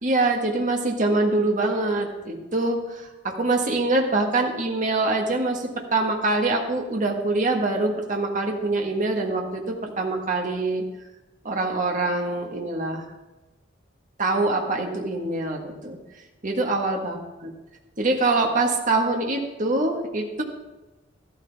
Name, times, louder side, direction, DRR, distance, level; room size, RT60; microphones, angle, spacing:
voice 1, 0.0-10.8 11.4-13.0 14.2-16.0 16.4-17.2 18.0-20.4, right 2 dB, 40° right, 1 dB, 1.6 m, -24 dB
13.5 x 13.0 x 3.5 m, 1.1 s
head